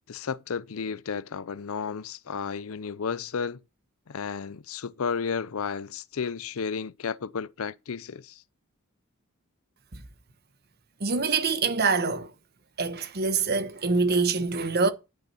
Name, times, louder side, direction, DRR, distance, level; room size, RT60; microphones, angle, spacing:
voice 1, 0.1-3.6 4.1-8.4, left 6 dB, 70° left, 0.5 m, -33 dB
voice 2, 11.0-12.3 12.8-14.9, right 4 dB, 45° right, 1.1 m, -25 dB
12.0 x 6.1 x 4.2 m
head